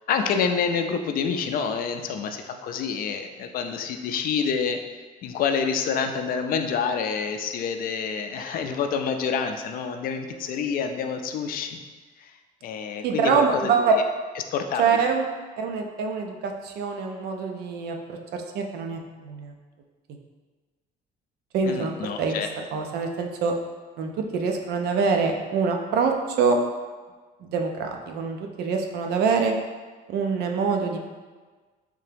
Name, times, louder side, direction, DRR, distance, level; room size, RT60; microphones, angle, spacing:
voice 1, 0.1-4.8 5.2-11.8 12.2-12.3 12.6-13.7 14.4-14.8 21.6-22.5, left 6 dB, 60° left, 6 dB, 0.4 m, -27 dB
voice 2, 13.0-13.9 14.8-15.3 15.6-19.5 21.5-21.9 22.2-22.4 22.7-23.5 24.0-26.6 27.4-29.5 30.1-31.0, right 5 dB, 75° right, 3 dB, 0.5 m, -25 dB
3.4 x 2.8 x 3.3 m, 1.4 s
cardioid pair, 110°, 17 cm